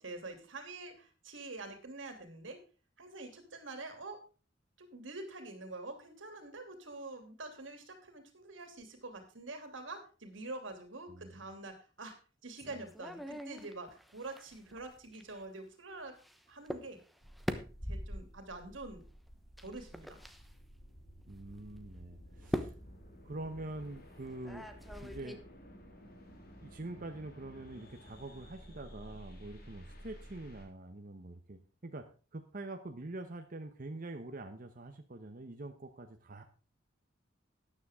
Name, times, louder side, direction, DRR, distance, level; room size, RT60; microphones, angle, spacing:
voice 1, 0.0-2.6 3.0-4.3 4.8-12.1 12.4-16.2 16.5-17.0 17.9-19.0 19.6-20.2, right 2 dB, 90° right, 6 dB, 2.8 m, -46 dB
voice 2, 11.1-11.4 21.3-22.7 23.2-24.7 25.0-25.4 26.6-36.4, right 2 dB, 45° right, 6 dB, 1.0 m, -45 dB
sound 1, 12.6-15.4 16.2-16.4 16.7-16.9 17.2-18.3 19.6-20.4 21.2-21.3 22.4-22.9 24.4-25.3, equal, ahead, 1.0 m, -41 dB
sound 2, 17.2-30.7, equal, 55° left, 3.3 m, -54 dB
13.0 x 9.9 x 3.6 m, 0.34 s
head